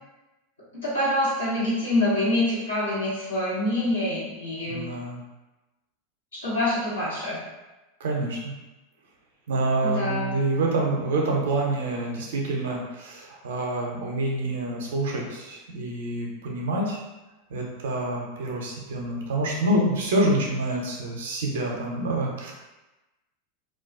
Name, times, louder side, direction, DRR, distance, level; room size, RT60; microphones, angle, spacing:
voice 1, 0.7-4.8 6.3-7.4 9.8-10.3, left 1 dB, 85° left, -9 dB, 1.0 m, -26 dB
voice 2, 4.7-5.2 8.0-8.5 9.5-17.0 17.5-22.5, right 2 dB, 65° right, -1 dB, 0.5 m, -27 dB
2.3 x 2.2 x 2.4 m, 1.1 s
figure-of-eight pair, 85°, 0 cm